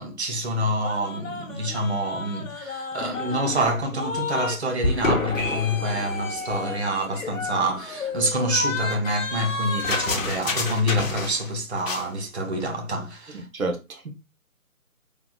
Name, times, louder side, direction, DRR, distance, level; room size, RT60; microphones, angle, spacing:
voice 1, 0.0-13.4, equal, 50° right, 1.0 m, -27 dB
sound 1, 0.8-4.6 4.8-11.5 11.8-12.1, left 3 dB, 60° left, 1.0 m, -30 dB
voice 2, 13.3-14.1, right 2 dB, 70° right, 1.2 m, -30 dB
4.1 x 3.4 x 2.3 m
figure-of-eight pair, 160°, 43 cm